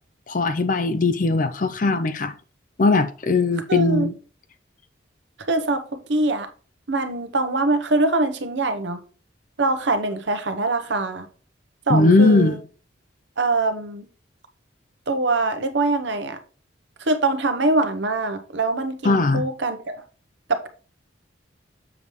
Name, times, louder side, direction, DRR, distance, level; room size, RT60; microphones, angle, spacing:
voice 1, 0.3-2.3 2.8-4.1 11.9-12.6 19.0-19.4, left 3 dB, 40° left, 0.5 m, -19 dB
voice 2, 3.7-4.1 5.5-6.5 6.9-9.0 9.6-11.3 11.9-12.6 13.4-14.1 15.1-16.4 17.0-20.0 20.5-20.7, right 2 dB, 65° right, 0.9 m, -23 dB
7.1 x 6.8 x 3.1 m
head